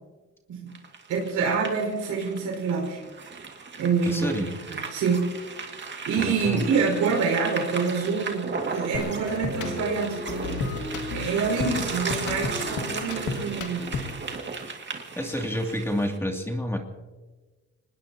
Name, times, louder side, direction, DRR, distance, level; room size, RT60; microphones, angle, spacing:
sound 1, 0.7-16.2, right 4 dB, 35° right, 2.2 m, -36 dB
voice 1, 1.1-3.0 3.8-5.3 6.1-10.6 11.1-14.1, right 5 dB, 90° right, -1 dB, 5.4 m, -27 dB
voice 2, 4.1-4.5 6.2-6.6 15.2-16.8, equal, 10° left, 2 dB, 2.6 m, -29 dB
sound 2, 8.9-14.3, left 4 dB, 80° left, 2.3 m, -33 dB
24.5 x 20.0 x 2.9 m, 1.3 s
cardioid pair, 90°, 30 cm